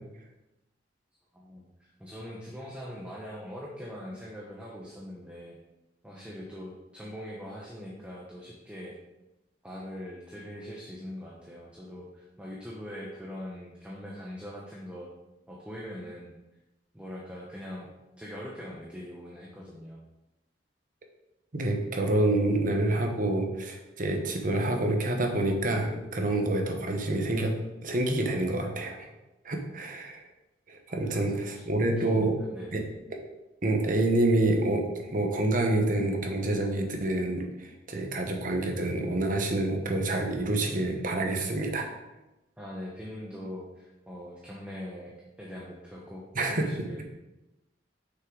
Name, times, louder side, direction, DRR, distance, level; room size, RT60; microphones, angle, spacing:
voice 1, 1.3-5.6 6.0-8.9 9.6-15.1 15.5-16.3 16.9-20.0 30.9-31.4 32.0-32.9 42.6-46.2 46.5-47.0, equal, 5° right, -4 dB, 0.9 m, -42 dB
voice 2, 21.5-27.6 27.8-29.1 29.4-30.2 30.7-32.3 32.7-32.8 33.1-33.2 33.6-41.9 46.3-46.9, right 2 dB, 45° right, 3 dB, 1.0 m, -27 dB
6.4 x 6.0 x 3.8 m, 1.0 s
head